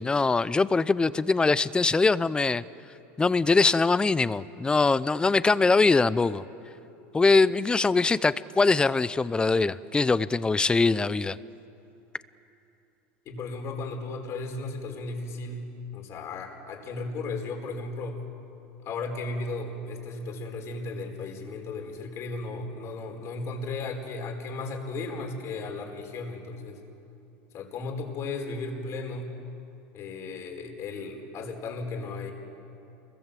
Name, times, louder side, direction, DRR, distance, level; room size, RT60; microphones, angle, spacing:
voice 1, 0.0-2.6 3.2-6.4 7.1-11.4, left 3 dB, 15° left, 17 dB, 0.6 m, -22 dB
voice 2, 13.2-15.7 15.9-18.2 18.8-26.8 27.5-29.3 29.9-32.3, left 3 dB, 45° left, 3 dB, 4.6 m, -35 dB
29.0 x 22.5 x 7.7 m, 2.8 s
supercardioid pair, 120°, 7 cm